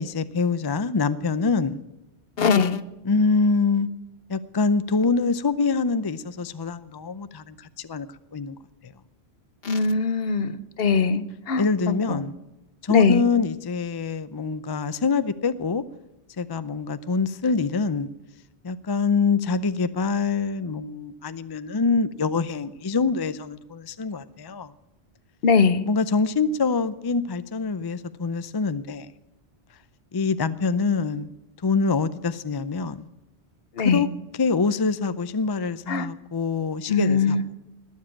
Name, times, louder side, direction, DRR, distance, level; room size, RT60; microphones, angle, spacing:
voice 1, 0.0-1.8 3.0-3.9 4.3-8.1 8.3-8.6 8.8-8.9 11.6-12.3 12.8-15.8 16.4-18.1 18.6-24.7 25.9-29.1 30.1-31.3 31.6-33.1 33.8-34.1 34.4-37.4, left 4 dB, 30° left, 14 dB, 0.4 m, -25 dB
voice 2, 2.4-2.8 9.6-11.6 12.1-12.2 12.9-13.2 25.4-25.9 33.8-34.0 35.9-36.1 36.9-37.4, left 5 dB, 60° left, 13 dB, 1.1 m, -21 dB
20.0 x 7.4 x 8.7 m, 0.97 s
omnidirectional pair, 1.1 m